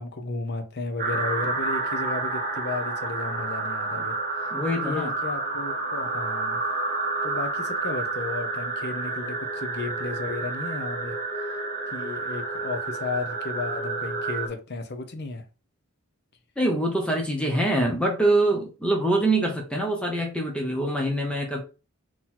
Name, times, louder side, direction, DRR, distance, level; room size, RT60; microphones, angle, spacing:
voice 1, 0.0-4.2 4.8-6.6 7.2-11.2 11.9-15.4, left 3 dB, 50° left, 0.8 m, -33 dB
sound 1, 1.0-14.5, right 3 dB, 40° right, 0.9 m, -29 dB
voice 2, 4.5-5.1 16.6-21.6, right 1 dB, 5° left, 0.8 m, -24 dB
3.9 x 3.0 x 4.3 m
head